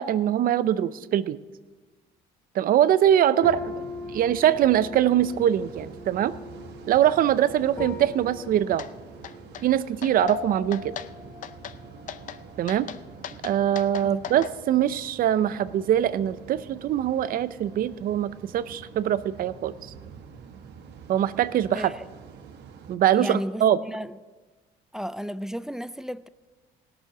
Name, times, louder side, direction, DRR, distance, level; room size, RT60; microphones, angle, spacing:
voice 1, 0.0-1.4 2.5-3.7 4.1-6.3 6.9-8.8 9.6-11.0 12.6-12.9 13.4-19.9 21.1-21.9 22.9-23.8, right 11 dB, 55° right, 0.6 m, -23 dB
sound 1, 3.4-13.3 13.6-14.3, left 4 dB, 20° left, 1.1 m, -40 dB
sound 2, 3.4-23.0, right 6 dB, 75° right, 1.1 m, -46 dB
sound 3, 8.8-8.9 9.2-9.7 10.0-10.4 10.7-11.1 11.4-11.8 12.1-12.4 12.7-14.5, left 9 dB, 50° left, 0.6 m, -38 dB
voice 2, 23.1-24.2 24.9-26.3, equal, 5° right, 0.3 m, -33 dB
17.5 x 6.3 x 6.9 m
cardioid pair, 110°, 17 cm